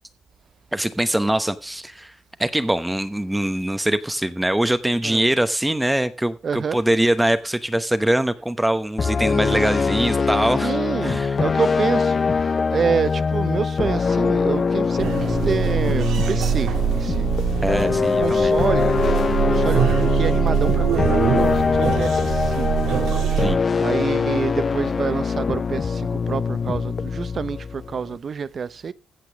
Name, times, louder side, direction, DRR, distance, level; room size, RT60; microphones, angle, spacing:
voice 1, 0.7-2.1 2.4-10.7 11.0-11.4 17.6-18.5 23.4-23.6, right 1 dB, 5° right, 0.9 m, -22 dB
voice 2, 6.4-6.8 10.6-17.3 18.0-18.9 19.5-19.8 20.1-22.7 23.8-28.9, right 6 dB, 45° right, 0.8 m, -27 dB
sound 1, 9.0-28.2, left 5 dB, 40° left, 0.6 m, -22 dB
sound 2, 15.0-23.6, right 11 dB, 85° right, 1.9 m, -23 dB
15.5 x 6.0 x 6.1 m
cardioid pair, 90°, 0 cm